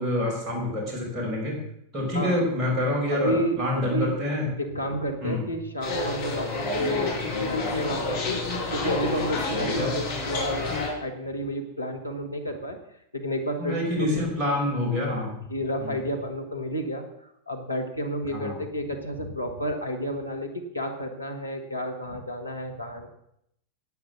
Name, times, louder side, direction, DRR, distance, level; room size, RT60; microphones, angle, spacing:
voice 1, 0.0-1.6 1.9-4.5 5.2-5.4 9.6-9.9 13.6-15.4 15.8-16.0 18.3-18.6, left 1 dB, 25° right, -2 dB, 6.4 m, -27 dB
voice 2, 3.1-4.1 4.6-7.2 7.5-12.8 13.1-14.1 15.0-17.0 17.5-23.1, equal, 85° left, 4 dB, 1.5 m, -31 dB
sound 1, 5.8-10.9, left 3 dB, 55° left, 5.4 m, -29 dB
11.0 x 9.7 x 6.3 m, 0.76 s
figure-of-eight pair, 90°, 0 cm